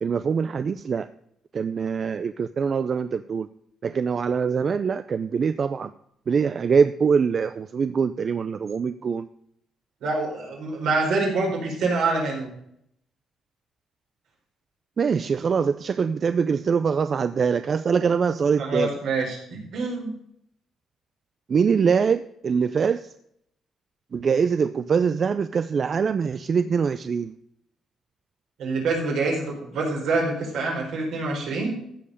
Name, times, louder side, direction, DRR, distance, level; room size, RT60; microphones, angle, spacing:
voice 1, 0.0-1.1 1.5-3.5 3.8-5.9 6.3-9.3 15.0-18.9 21.5-23.1 24.1-27.4, right 6 dB, 45° right, 12 dB, 0.5 m, -23 dB
voice 2, 10.0-12.5 18.6-20.1 28.6-31.8, right 3 dB, 80° right, -1 dB, 4.5 m, -26 dB
15.0 x 5.6 x 6.4 m, 0.73 s
cardioid pair, 90°, 0 cm